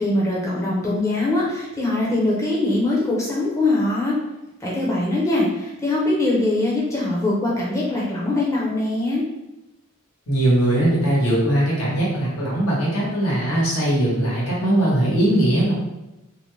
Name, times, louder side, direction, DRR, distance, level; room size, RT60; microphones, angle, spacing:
voice 1, 0.0-4.2 4.6-9.2, left 2 dB, 15° left, -6 dB, 0.6 m, -22 dB
voice 2, 10.3-15.7, right 1 dB, 85° left, -6 dB, 1.2 m, -20 dB
2.6 x 2.1 x 3.1 m, 0.96 s
head